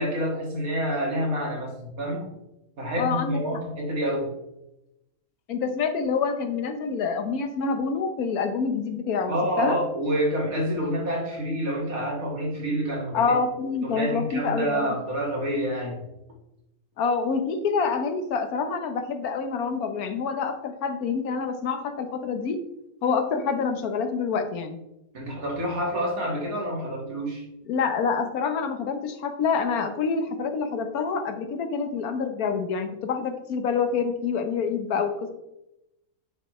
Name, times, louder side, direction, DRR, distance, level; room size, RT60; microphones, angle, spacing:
voice 1, 0.0-2.3 2.8-4.3 9.3-13.4 13.8-16.0 25.1-27.4, equal, 70° right, -2 dB, 2.4 m, -28 dB
voice 2, 2.9-3.6 5.5-9.8 13.1-14.9 17.0-22.6 23.0-24.8 27.7-35.3, left 5 dB, 90° left, 7 dB, 1.4 m, -27 dB
9.2 x 5.5 x 3.1 m, 0.90 s
omnidirectional pair, 1.5 m